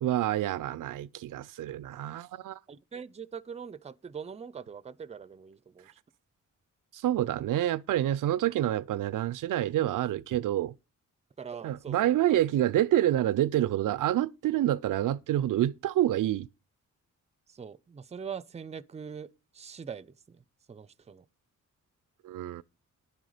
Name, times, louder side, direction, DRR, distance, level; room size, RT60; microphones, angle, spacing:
voice 1, 0.0-2.6 6.9-10.7 11.6-16.5 22.2-22.6, right 13 dB, 80° right, 0.5 m, -27 dB
voice 2, 2.7-5.9 11.4-12.2 17.5-20.4 20.7-21.3, right 6 dB, 20° right, 0.5 m, -42 dB
10.5 x 9.3 x 5.0 m
wide cardioid pair, 145°, 31 cm